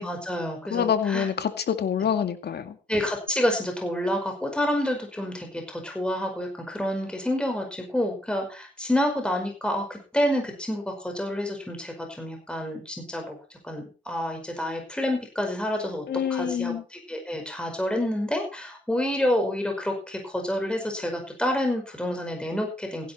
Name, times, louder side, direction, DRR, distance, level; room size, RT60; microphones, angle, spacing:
voice 1, 0.0-1.3 2.9-13.4 13.6-16.0 16.3-16.7 17.1-23.1, left 1 dB, 5° left, 3 dB, 5.0 m, -28 dB
voice 2, 0.7-2.8 16.1-16.8, left 8 dB, 55° left, 9 dB, 2.1 m, -26 dB
16.0 x 10.5 x 4.4 m, 0.34 s
cardioid pair, 90°, 20 cm